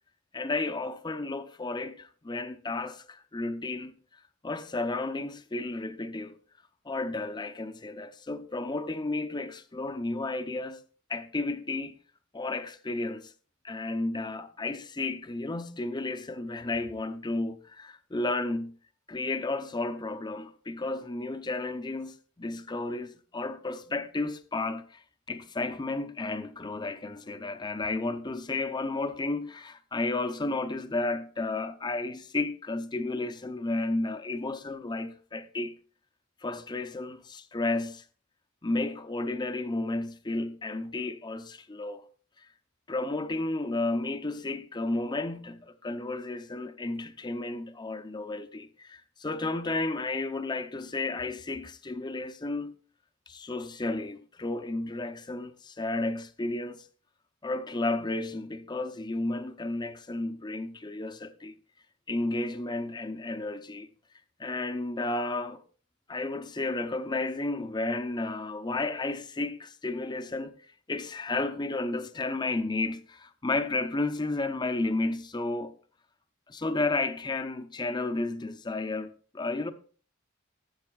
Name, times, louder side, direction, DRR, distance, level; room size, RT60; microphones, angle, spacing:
voice 1, 0.3-3.9 4.4-6.4 6.8-10.8 11.1-11.9 12.3-13.3 13.6-18.7 19.1-35.8 36.4-38.0 38.6-42.0 42.9-52.8 53.3-56.8 57.4-61.5 62.1-63.9 64.4-65.6 66.1-75.7 76.5-79.7, left 2 dB, 20° left, 0.6 m, -32 dB
15.0 x 7.9 x 2.3 m
head